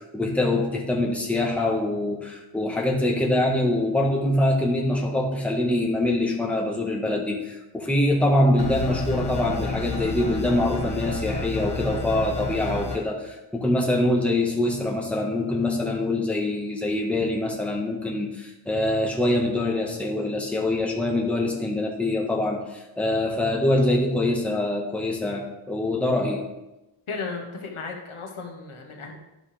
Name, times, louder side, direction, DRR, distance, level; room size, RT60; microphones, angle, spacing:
voice 1, 0.0-26.4, left 1 dB, 5° left, -1 dB, 1.5 m, -24 dB
sound 1, 8.6-13.0, left 2 dB, 55° left, 1.3 m, -30 dB
voice 2, 27.1-29.2, left 4 dB, 80° left, 0 dB, 1.4 m, -35 dB
11.5 x 5.4 x 3.4 m, 0.98 s
wide cardioid pair, 60°, 49 cm